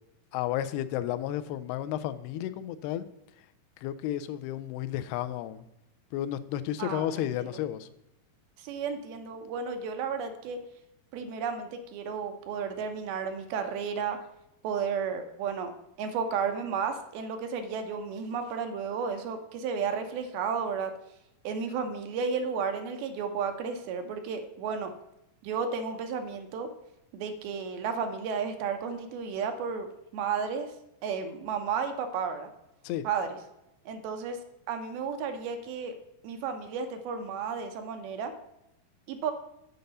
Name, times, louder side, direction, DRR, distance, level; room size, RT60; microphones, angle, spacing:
voice 1, 0.3-3.1 3.8-5.6 6.1-7.9 32.8-33.0, left 12 dB, 90° left, 13 dB, 2.6 m, -32 dB
voice 2, 6.8-7.6 8.6-10.6 11.1-14.2 14.6-15.7 16.0-20.9 21.4-24.9 25.4-26.7 27.1-29.9 30.1-30.7 31.0-32.5 33.0-33.4 33.9-34.4 34.7-36.0 36.2-38.3 39.1-39.3, right 6 dB, 80° right, 6 dB, 2.7 m, -33 dB
7.9 x 5.2 x 6.9 m, 0.86 s
omnidirectional pair, 4.5 m